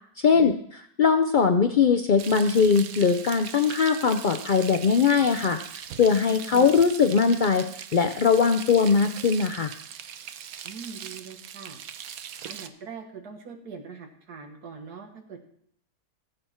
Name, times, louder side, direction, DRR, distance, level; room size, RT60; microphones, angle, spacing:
voice 1, 0.2-9.7, left 6 dB, 75° left, 8 dB, 0.4 m, -21 dB
Frying (food), 2.2-12.7, right 9 dB, 70° right, 1.1 m, -40 dB
voice 2, 10.6-11.8 12.5-15.4, right 5 dB, 90° right, 4 dB, 2.2 m, -42 dB
18.0 x 7.8 x 4.4 m, 0.66 s
omnidirectional pair, 1.6 m